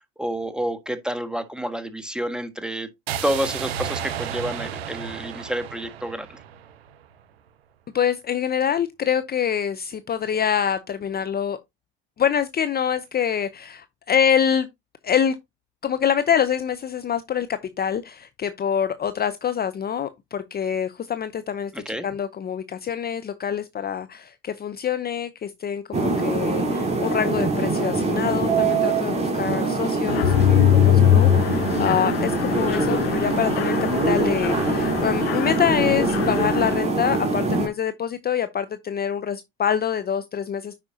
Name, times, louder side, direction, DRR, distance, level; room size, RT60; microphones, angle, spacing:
voice 1, 0.0-2.9 3.2-6.4 21.7-22.1, equal, 5° right, 1.5 m, -29 dB
sound 1, 3.1-7.1, right 8 dB, 90° right, 0.6 m, -33 dB
voice 2, 7.9-11.6 12.2-14.7 15.0-15.4 15.8-33.8 34.1-40.8, left 8 dB, 30° left, 0.7 m, -25 dB
sound 2, 25.9-37.7, right 3 dB, 20° right, 3.4 m, -24 dB
Mechanisms, 30.1-36.8, left 12 dB, 85° left, 0.7 m, -22 dB
9.9 x 4.9 x 2.7 m
hypercardioid pair, 65°, 30 cm